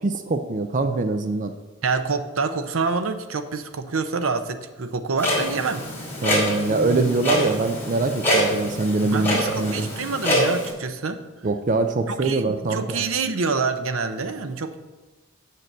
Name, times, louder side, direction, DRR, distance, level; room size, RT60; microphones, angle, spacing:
voice 1, 0.0-1.5 6.2-9.9 11.4-13.0, right 3 dB, 40° right, 7 dB, 0.5 m, -23 dB
voice 2, 1.8-5.9 9.0-11.2 12.1-14.8, right 4 dB, 75° right, 9 dB, 0.7 m, -27 dB
Clock, 5.2-10.7, equal, 10° left, 2.8 m, -25 dB
7.6 x 6.6 x 6.6 m, 1.2 s
head